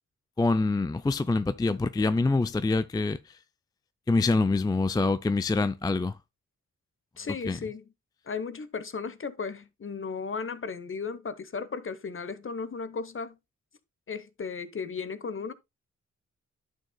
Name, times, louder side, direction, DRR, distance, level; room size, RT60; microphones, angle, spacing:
voice 1, 0.4-3.2 4.1-6.1 7.5-7.6, left 3 dB, 15° left, 0.4 m, -25 dB
voice 2, 7.2-7.8 8.3-13.4 14.1-15.5, left 5 dB, 40° left, 0.9 m, -35 dB
11.0 x 6.4 x 2.2 m
cardioid pair, 50°, 31 cm